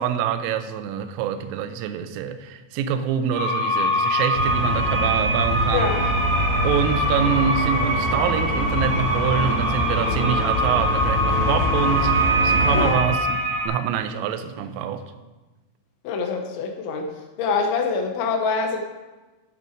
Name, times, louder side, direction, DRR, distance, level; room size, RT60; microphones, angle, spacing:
voice 1, 0.0-5.9 6.6-15.0, right 8 dB, 85° right, 9 dB, 3.3 m, -25 dB
sound 1, 3.3-13.7, right 1 dB, 60° right, 0.6 m, -24 dB
sound 2, 4.3-12.9, equal, 55° left, 4.4 m, -25 dB
voice 2, 5.7-6.0 12.7-13.0 16.0-17.1 17.4-18.8, left 5 dB, 75° left, 4 dB, 3.0 m, -25 dB
10.0 x 6.9 x 6.1 m, 1.2 s
omnidirectional pair, 5.8 m